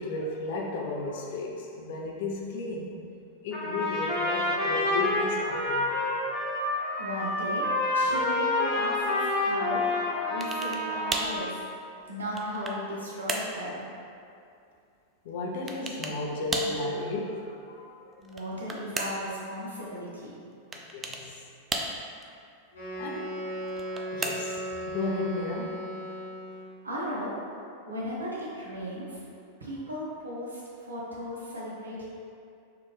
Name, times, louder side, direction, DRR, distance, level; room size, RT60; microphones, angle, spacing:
voice 1, 0.0-3.0 3.4-7.2 11.0-11.2 15.2-18.0 20.7-21.4 23.0-24.6 24.8-25.8, left 2 dB, 55° left, -1 dB, 0.5 m, -34 dB
Trumpet, 3.5-11.6, left 2 dB, 30° left, 1.0 m, -28 dB
voice 2, 7.0-7.7 7.9-10.0 10.3-11.6 12.1-13.9 16.0-16.1 16.5-16.7 18.2-20.4 26.8-29.3 29.6-32.1, equal, 75° right, -5 dB, 0.9 m, -36 dB
sound 1, 10.4-10.9 11.1-11.4 12.0-12.9 13.3-13.6 15.7-16.2 16.5-16.8 18.2-19.3 20.7-21.3 21.7-22.2 23.7-24.7, right 2 dB, 20° right, 0.4 m, -34 dB
Wind instrument woodwind instrument, 22.7-26.8, equal, 80° left, 1.4 m, -37 dB
4.6 x 2.6 x 3.3 m, 2.5 s
figure-of-eight pair, 90°, 0 cm